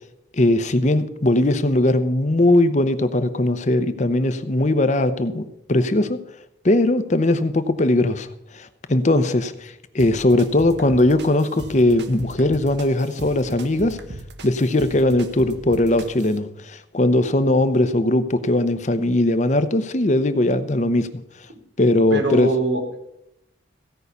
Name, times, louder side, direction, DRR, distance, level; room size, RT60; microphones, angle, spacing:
voice 1, 0.3-6.2 6.6-8.3 8.5-14.0 14.4-21.2 21.8-22.5, left 1 dB, 40° left, 11 dB, 0.8 m, -19 dB
sound 1, 10.0-16.4, right 2 dB, 65° right, 1.1 m, -38 dB
voice 2, 22.1-23.0, right 1 dB, 85° right, 2 dB, 3.1 m, -22 dB
16.5 x 5.6 x 8.1 m, 0.84 s
head